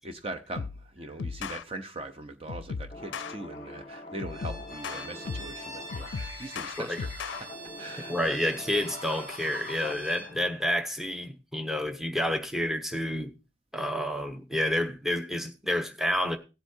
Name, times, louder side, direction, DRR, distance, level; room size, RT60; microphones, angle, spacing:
voice 1, 0.0-8.3, right 2 dB, 30° right, 0.8 m, -41 dB
sound 1, 0.6-0.9 1.2-1.6 2.5-3.3 4.2-5.6 5.9-7.4, left 5 dB, 80° left, 0.4 m, -36 dB
sound 2, 2.9-10.6, left 2 dB, 35° left, 1.0 m, -44 dB
Bowed string instrument, 4.3-10.3, right 3 dB, 90° right, 7.8 m, -46 dB
voice 2, 8.1-13.3 13.7-16.4, left 1 dB, ahead, 0.9 m, -29 dB
17.5 x 8.1 x 2.7 m
head